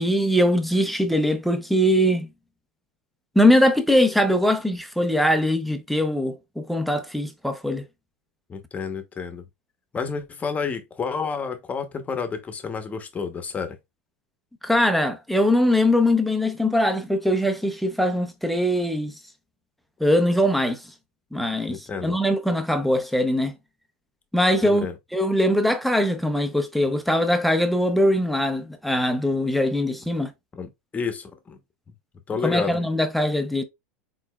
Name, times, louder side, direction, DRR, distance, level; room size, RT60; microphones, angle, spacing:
voice 1, 0.0-2.3 3.4-7.8 14.6-19.1 20.0-20.8 21.3-23.5 24.3-24.9 25.1-30.3 32.4-33.6, left 1 dB, ahead, 0.6 m, -21 dB
voice 2, 8.5-9.4 9.9-13.8 21.7-22.2 24.6-24.9 30.5-31.6 32.3-32.8, left 5 dB, 20° left, 0.9 m, -30 dB
4.3 x 4.0 x 2.3 m
supercardioid pair, 120°, 7 cm